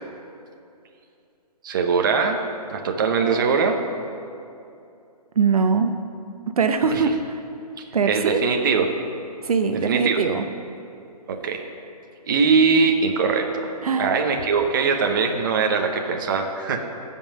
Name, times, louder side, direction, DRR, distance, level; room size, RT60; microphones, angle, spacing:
voice 1, 1.6-2.4 2.7-3.8 6.9-7.0 7.8-8.9 9.9-10.2 11.3-11.6 12.3-16.9, right 5 dB, 30° right, 3 dB, 0.8 m, -21 dB
voice 2, 5.4-5.9 6.6-7.2 7.9-8.4 9.4-10.5 13.8-14.1, right 5 dB, 60° right, 7 dB, 0.8 m, -21 dB
14.5 x 5.5 x 7.7 m, 2.6 s
hypercardioid pair, 170°, 21 cm